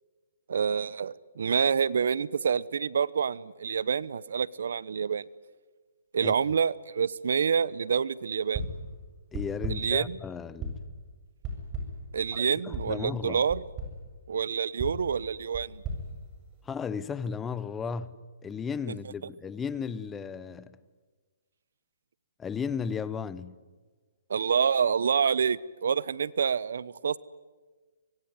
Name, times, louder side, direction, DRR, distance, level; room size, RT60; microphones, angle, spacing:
voice 1, 0.5-5.2 6.1-8.7 9.7-10.2 12.1-13.6 14.3-15.8 24.3-27.2, right 6 dB, 70° right, 0.8 m, -27 dB
sound 1, 8.5-8.9 9.3-10.0 10.6-11.0 11.4-12.1 12.7-13.0 13.5-14.0 14.8-16.9, right 1 dB, 25° right, 7.7 m, -37 dB
voice 2, 9.3-10.7 12.3-13.4 16.6-20.8 22.4-23.6, left 6 dB, 10° left, 0.9 m, -35 dB
25.5 x 22.5 x 9.6 m
hypercardioid pair, 140°, 0 cm